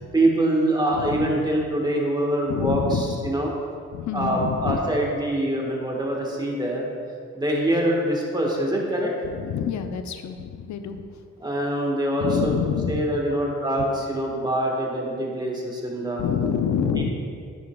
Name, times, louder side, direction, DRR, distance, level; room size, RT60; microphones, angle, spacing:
voice 1, 0.1-3.5 4.1-6.9 7.3-9.1 11.4-12.5 12.9-16.2 17.0-17.1, right 1 dB, 15° right, -2 dB, 1.4 m, -24 dB
voice 2, 0.9-1.3 2.5-3.3 3.9-4.8 9.2-11.2 12.2-13.0 16.2-17.1, left 7 dB, 60° left, 7 dB, 0.6 m, -27 dB
9.5 x 5.4 x 2.3 m, 2.2 s
cardioid pair, 70°, 32 cm